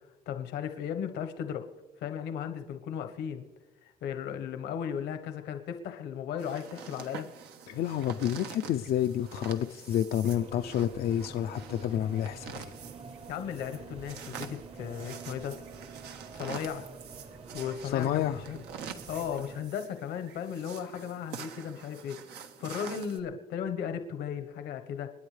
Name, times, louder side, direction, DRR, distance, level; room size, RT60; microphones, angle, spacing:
voice 1, 0.3-1.7 2.0-3.5 3.8-7.3 13.3-15.6 16.3-16.9 17.5-18.6 19.1-25.1, left 8 dB, 85° left, 7 dB, 1.2 m, -36 dB
sound 1, 6.4-23.2, right 7 dB, 80° right, 1.3 m, -46 dB
voice 2, 7.7-12.7 17.8-18.4, left 11 dB, 65° left, 7 dB, 0.5 m, -29 dB
sound 2, 10.3-19.6, right 4 dB, 35° right, 1.0 m, -47 dB
28.0 x 10.0 x 3.3 m, 1.2 s
cardioid pair, 110°, 17 cm